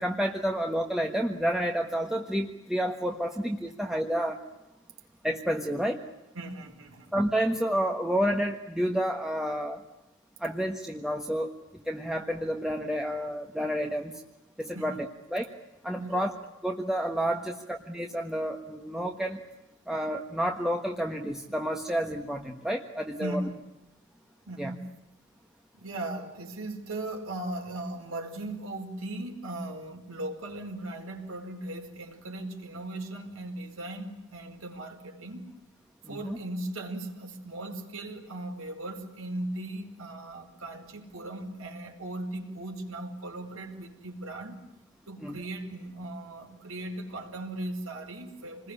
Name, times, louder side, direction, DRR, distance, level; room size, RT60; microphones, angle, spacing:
voice 1, 0.0-4.4 5.2-6.0 7.1-9.8 10.4-14.1 14.6-15.5 15.8-16.3 16.6-19.4 19.9-23.4 24.6-24.7 36.2-36.4 45.2-45.3, equal, 5° right, 2 dB, 1.4 m, -30 dB
voice 2, 6.3-7.1 14.7-15.0 16.0-16.3 23.2-23.6 24.5-24.9 25.7-35.5 36.1-44.6 45.1-48.7, right 1 dB, 75° right, 2 dB, 5.1 m, -38 dB
28.5 x 21.0 x 9.9 m, 0.96 s
head